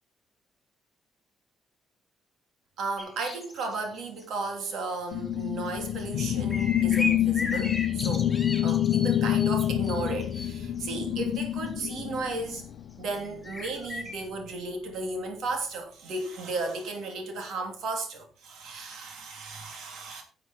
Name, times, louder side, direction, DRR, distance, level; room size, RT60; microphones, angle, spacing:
voice 1, 2.8-8.3 8.6-12.6 13.0-20.2, right 3 dB, 75° right, 3.1 m, -34 dB
sound 1, 3.0-3.8 4.2-4.5 5.1-5.2 6.0-10.5 10.8-10.9 12.0-12.1 13.2-13.3 13.4-14.2, left 1 dB, 10° left, 3.2 m, -36 dB
sound 2, 5.1-12.9, left 12 dB, 80° left, 0.5 m, -27 dB
10.5 x 7.5 x 4.4 m
cardioid pair, 90°, 0 cm